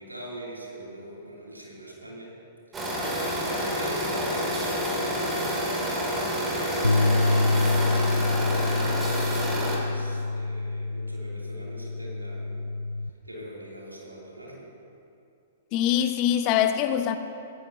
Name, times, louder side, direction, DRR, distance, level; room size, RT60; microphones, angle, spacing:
voice 1, 0.0-2.4 2.7-3.0 3.5-7.9 8.5-12.6 13.2-14.7, right 1 dB, 85° right, -4 dB, 3.2 m, -42 dB
sound 1, 2.7-9.8, equal, 15° right, 3.2 m, -28 dB
sound 2, 6.8-13.1, left 2 dB, 90° left, 0.5 m, -26 dB
voice 2, 15.7-17.2, left 10 dB, 35° left, 8 dB, 0.7 m, -23 dB
17.5 x 16.0 x 2.9 m, 2.5 s
figure-of-eight pair, 110°, 0 cm